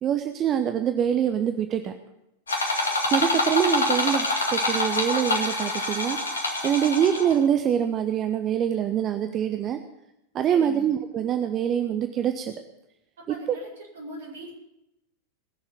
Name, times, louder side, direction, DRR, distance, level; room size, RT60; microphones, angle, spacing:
voice 1, 0.0-1.9 3.1-6.2 6.6-9.8 10.3-12.5 13.3-13.6, right 9 dB, 30° right, 7 dB, 0.8 m, -25 dB
sound 1, 2.5-7.4, left 2 dB, 75° left, 2.2 m, -26 dB
voice 2, 10.5-10.9 13.2-13.7 13.9-14.5, right 1 dB, 65° right, -3 dB, 5.5 m, -40 dB
20.0 x 7.1 x 8.1 m, 0.87 s
figure-of-eight pair, 90°, 0 cm